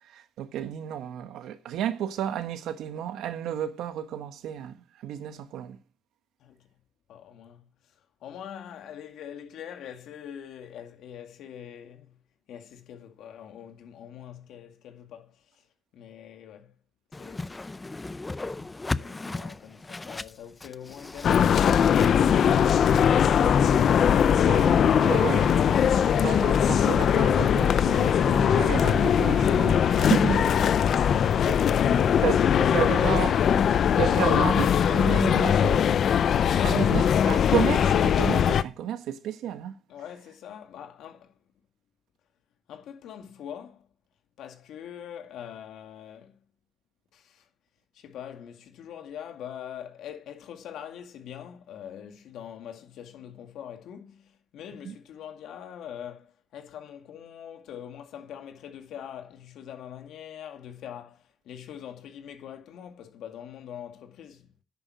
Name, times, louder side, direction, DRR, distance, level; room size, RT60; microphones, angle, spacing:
voice 1, 0.1-5.8 25.0-25.5 26.2-30.6 32.2-33.3 34.0-35.9 36.6-39.7 54.8-54.9, right 10 dB, 85° right, 1.5 m, -31 dB
voice 2, 7.1-7.9 8.2-12.2 12.5-15.6 15.9-16.7 17.1-17.6 18.4-18.7 19.0-24.0 36.5-37.1 39.9-41.4 42.7-43.9 44.4-46.4 47.1-47.5 47.9-64.5, left 9 dB, 80° left, 2.2 m, -43 dB
Whoosh swoosh swish, 17.1-22.1, left 3 dB, 20° left, 0.5 m, -35 dB
sound 1, 21.2-38.6, left 8 dB, 65° left, 0.6 m, -21 dB
sound 2, 24.4-32.4, right 6 dB, 55° right, 2.3 m, -42 dB
10.5 x 8.9 x 6.3 m
cardioid pair, 90°, 0 cm